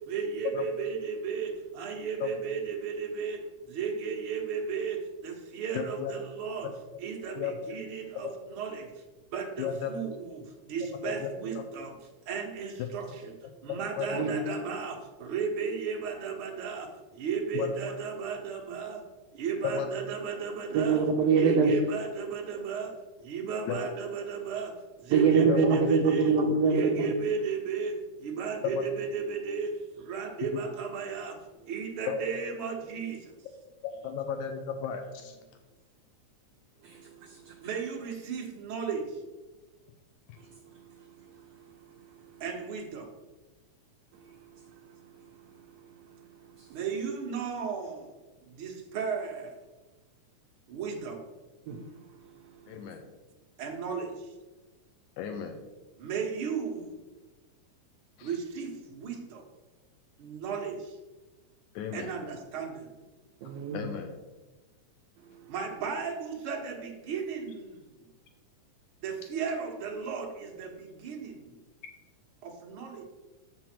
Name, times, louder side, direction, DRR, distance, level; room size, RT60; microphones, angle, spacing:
voice 1, 0.1-3.4 3.7-5.0 5.2-6.7 7.0-8.8 9.3-10.4 10.7-11.9 12.3-13.3 13.6-16.9 17.2-19.0 19.4-21.0 21.3-22.9 23.3-24.7 25.1-26.3 26.7-27.9 28.2-29.7 30.1-31.3 31.7-33.2 37.6-39.0 42.4-43.1 46.7-48.0 48.6-49.5 50.7-51.2 53.6-54.1 56.0-56.9 58.2-59.4 60.2-60.7 61.9-62.7 65.5-67.7 69.0-71.3 72.4-73.0, right 6 dB, 55° right, 0 dB, 1.7 m, -34 dB
voice 2, 5.7-6.1 7.4-7.6 9.6-9.9 11.0-11.3 11.6-11.7 14.0-14.3 17.5-17.8 19.6-19.9 23.7-23.9 25.4-25.6 28.6-28.8 32.1-32.2 33.8-35.4 52.7-53.1 55.2-55.6 58.2-58.3 61.8-62.1 63.7-64.1, left 7 dB, 80° left, 5 dB, 2.0 m, -34 dB
voice 3, 20.7-21.7 25.1-27.1 36.8-37.0 37.5-37.6 51.7-51.8 63.4-63.9, right 5 dB, 85° right, 4 dB, 1.4 m, -24 dB
7.3 x 5.9 x 4.4 m, 1.2 s
omnidirectional pair, 3.5 m